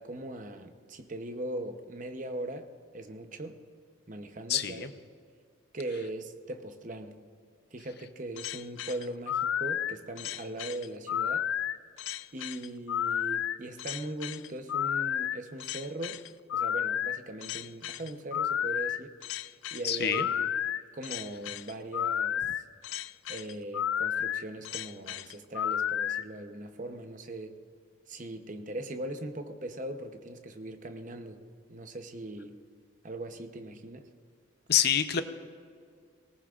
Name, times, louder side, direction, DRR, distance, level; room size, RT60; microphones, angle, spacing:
voice 1, 0.0-2.7 2.9-3.6 4.1-4.9 5.7-7.2 7.7-11.5 12.3-16.2 16.5-19.1 19.7-20.5 20.9-22.4 23.3-27.6 28.1-31.4 31.7-32.6 33.0-34.1, right 1 dB, 40° right, 7 dB, 0.8 m, -40 dB
voice 2, 4.5-4.9 19.8-20.2 34.7-35.2, left 9 dB, 55° left, 10 dB, 0.7 m, -26 dB
sound 1, 8.4-26.2, left 10 dB, 70° left, 0.3 m, -32 dB
20.0 x 18.0 x 2.5 m, 2.1 s
head